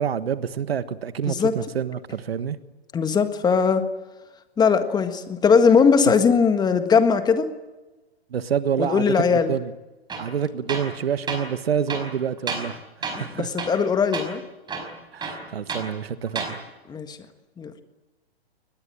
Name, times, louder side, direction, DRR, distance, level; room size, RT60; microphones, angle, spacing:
voice 1, 0.0-2.6 8.3-9.0 9.3-9.7 10.2-13.5 15.1-16.6, right 8 dB, 70° right, 1.5 m, -27 dB
voice 2, 1.3-1.6 2.9-3.8 4.6-7.5 8.8-9.5 13.1-14.4 16.9-17.2 17.6-17.7, left 6 dB, 15° left, 1.7 m, -20 dB
Tools, 10.1-10.3 10.7-11.0 11.3-11.4 11.9-12.7 13.0-13.3 13.6-13.9 14.1-14.3 14.7-15.9 16.3-16.6, right 4 dB, 15° right, 5.1 m, -31 dB
23.0 x 20.5 x 9.0 m
figure-of-eight pair, 120°, 32 cm